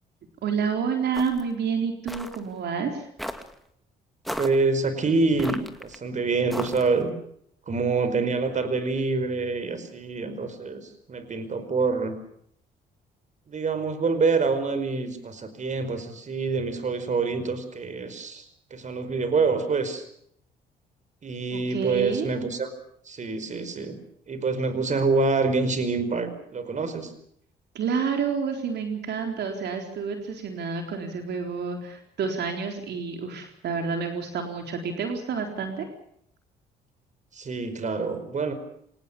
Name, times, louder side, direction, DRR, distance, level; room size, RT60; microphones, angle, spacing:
voice 1, 0.4-3.1 21.5-22.3 27.7-35.9, right 6 dB, 65° right, 4 dB, 4.1 m, -29 dB
sound 1, 1.1-1.5 2.1-2.4 3.2-3.5 4.3-4.6 5.4-6.0 6.5-7.0, equal, ahead, 2.4 m, -35 dB
voice 2, 4.4-7.1 7.7-12.2 13.5-18.4 18.7-20.0 21.2-22.7 23.0-24.0 24.3-27.1 37.3-38.5, right 4 dB, 40° right, 11 dB, 5.1 m, -26 dB
26.0 x 20.0 x 7.0 m, 0.69 s
cardioid pair, 85°, 18 cm